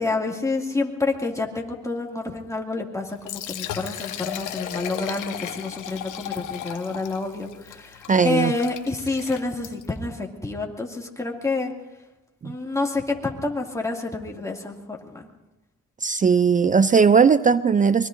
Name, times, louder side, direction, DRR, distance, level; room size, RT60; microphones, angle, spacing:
voice 1, 0.0-11.7 12.4-15.3, left 3 dB, 10° left, 0 dB, 2.3 m, -28 dB
Liquid, 3.1-10.0, left 10 dB, 85° left, 1.1 m, -36 dB
voice 2, 8.1-8.5 12.4-12.5 16.0-18.1, right 5 dB, 25° right, 15 dB, 0.4 m, -18 dB
24.5 x 22.0 x 2.6 m, 1.0 s
cardioid pair, 90°, 30 cm